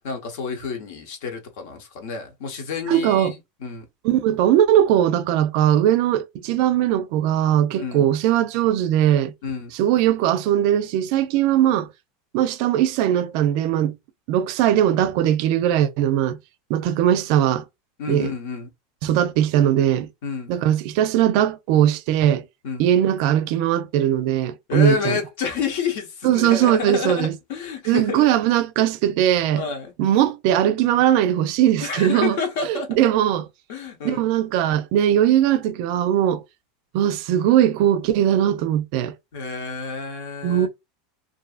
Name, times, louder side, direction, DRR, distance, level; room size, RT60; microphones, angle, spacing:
voice 1, 0.0-3.8 7.8-8.1 9.4-9.7 18.0-18.7 20.2-20.5 22.6-22.9 24.7-28.3 29.5-29.9 31.8-33.1 33.7-34.3 39.3-40.7, left 6 dB, 70° left, 0.9 m, -29 dB
voice 2, 2.9-3.3 4.0-9.3 9.7-11.9 12.3-13.9 14.3-16.4 16.7-17.6 18.1-18.3 19.0-20.1 20.5-22.4 22.8-25.2 26.2-27.3 27.9-29.6 30.0-32.4 32.7-33.5 34.0-36.4 36.9-39.1 40.4-40.7, right 11 dB, 60° right, 0.4 m, -19 dB
2.6 x 2.4 x 2.4 m
supercardioid pair, 110°, 0 cm